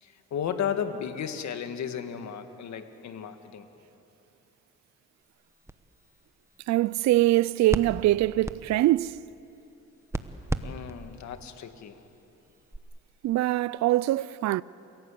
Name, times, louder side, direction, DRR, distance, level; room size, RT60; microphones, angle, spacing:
voice 1, 0.0-3.7 10.6-12.0, left 8 dB, 65° left, 1.8 m, -34 dB
sound 1, 5.2-12.8, right 2 dB, 10° right, 1.1 m, -39 dB
voice 2, 6.7-9.2 13.2-14.6, right 16 dB, 65° right, 0.4 m, -23 dB
28.5 x 17.5 x 8.5 m
cardioid pair, 90°, 30 cm